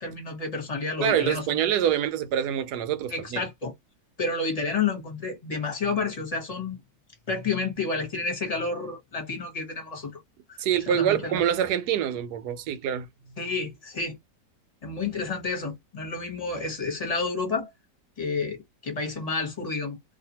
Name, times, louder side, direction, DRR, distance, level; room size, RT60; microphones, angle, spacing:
voice 1, 0.0-1.6 3.1-3.7 4.2-6.8 7.3-10.2 10.5-10.6 10.9-11.4 13.4-14.2 14.8-17.7 18.2-20.0, left 4 dB, 30° left, 0.9 m, -30 dB
voice 2, 1.0-3.4 10.6-13.1, right 10 dB, 75° right, 1.1 m, -25 dB
2.7 x 2.4 x 2.8 m
omnidirectional pair, 1.8 m